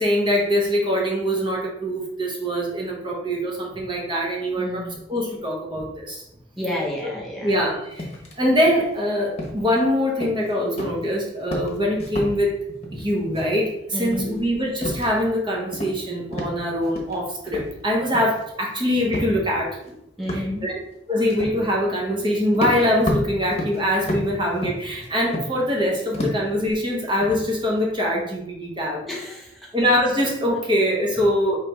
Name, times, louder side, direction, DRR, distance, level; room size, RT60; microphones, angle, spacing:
voice 1, 0.0-6.2 7.4-12.6 12.9-20.0 20.3-20.7 21.1-29.0 29.7-31.6, equal, 25° right, -1 dB, 0.8 m, -23 dB
voice 2, 4.6-5.0 6.6-7.5 12.9-13.0 13.9-14.4 20.2-20.6 29.1-29.5, left 1 dB, ahead, -5 dB, 0.8 m, -30 dB
sound 1, 8.0-8.3 8.7-8.9 9.4-9.8 10.2-10.5 10.8-11.1 11.4-12.3 12.7-13.0 13.3-13.8 14.0-15.4 15.7-16.1 16.3-17.2 17.4-18.4 19.1-19.3 19.8-19.9 20.3-20.5 21.3-21.6 22.2-22.3 22.5-25.8 26.1-26.5 27.0-27.8, left 1 dB, 35° left, 0.9 m, -31 dB
3.3 x 3.0 x 4.6 m, 0.81 s
head